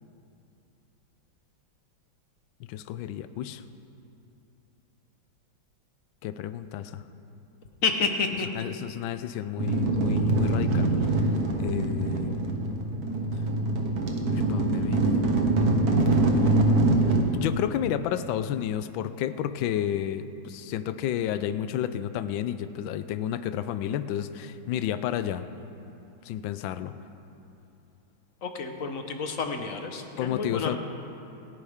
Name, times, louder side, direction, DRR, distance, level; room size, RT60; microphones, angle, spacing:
voice 1, 2.7-3.6 6.2-7.0 8.5-11.3 11.5-12.9 14.3-15.3 17.3-25.5 26.2-27.0 30.2-30.8, left 10 dB, 80° left, 12 dB, 1.3 m, -31 dB
voice 2, 7.8-8.5 28.4-30.8, left 4 dB, 50° left, 5 dB, 1.2 m, -29 dB
sound 1, 9.6-17.2, right 2 dB, 50° right, 1.6 m, -24 dB
27.0 x 10.0 x 3.6 m, 2.8 s
omnidirectional pair, 2.2 m